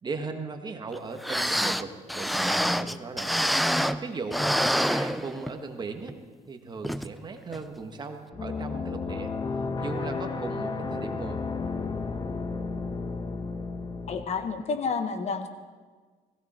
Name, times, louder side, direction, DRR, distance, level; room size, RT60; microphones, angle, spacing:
voice 1, 0.0-3.3 4.0-4.5 4.8-6.2 6.5-9.3 9.8-11.4, right 4 dB, 30° right, 5 dB, 1.7 m, -37 dB
sound 1, 0.9-1.0 1.2-4.1 4.3-5.7 6.1-6.2 6.8-7.1 7.5-7.6, equal, ahead, 0.5 m, -26 dB
sound 2, 8.3-14.3, left 4 dB, 30° left, 1.2 m, -32 dB
voice 2, 14.1-15.5, left 5 dB, 45° left, 9 dB, 1.2 m, -30 dB
18.5 x 16.5 x 4.4 m, 1.5 s
cardioid pair, 115°, 15 cm